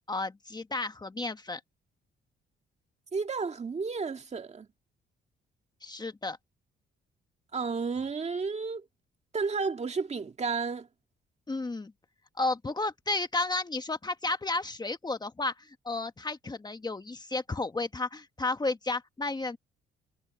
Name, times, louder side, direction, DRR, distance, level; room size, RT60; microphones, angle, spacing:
voice 1, 0.1-1.6 5.8-6.4 11.5-11.9 12.4-19.6, left 2 dB, 20° left, 1.4 m, -32 dB
voice 2, 3.1-4.7 7.5-8.9 9.3-10.9, right 4 dB, 35° right, 1.9 m, -32 dB
cardioid pair, 90°, 20 cm